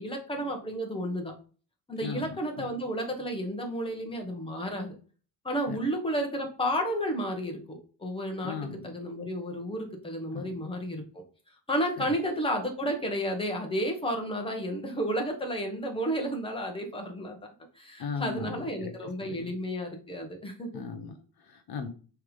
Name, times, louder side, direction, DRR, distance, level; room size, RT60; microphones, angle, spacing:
voice 1, 0.0-1.3 1.9-5.0 5.4-8.6 8.8-11.0 11.7-17.4 17.7-20.8, equal, 10° left, 2 dB, 1.4 m, -32 dB
voice 2, 2.0-2.7 5.7-5.9 8.4-9.0 10.3-10.7 12.0-12.1 18.0-19.5 20.7-21.9, left 5 dB, 55° left, 6 dB, 1.0 m, -38 dB
6.7 x 3.5 x 5.2 m, 0.39 s
cardioid pair, 155°, 45 cm